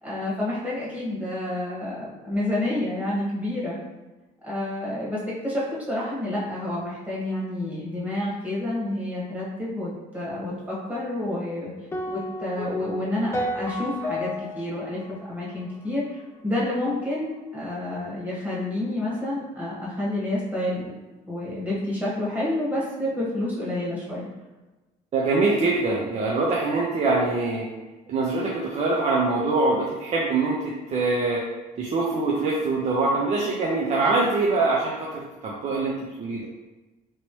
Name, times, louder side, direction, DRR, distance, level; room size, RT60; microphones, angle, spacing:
voice 1, 0.0-3.8 4.4-11.7 12.1-20.9 21.3-24.3, left 1 dB, 10° right, -7 dB, 1.3 m, -29 dB
sound 1, 11.9-16.2, left 1 dB, 15° left, 0.4 m, -33 dB
voice 2, 25.1-27.7 28.1-31.4 31.8-36.4, right 3 dB, 40° right, -4 dB, 0.6 m, -24 dB
3.0 x 2.9 x 3.0 m, 1.1 s
cardioid pair, 110°, 17 cm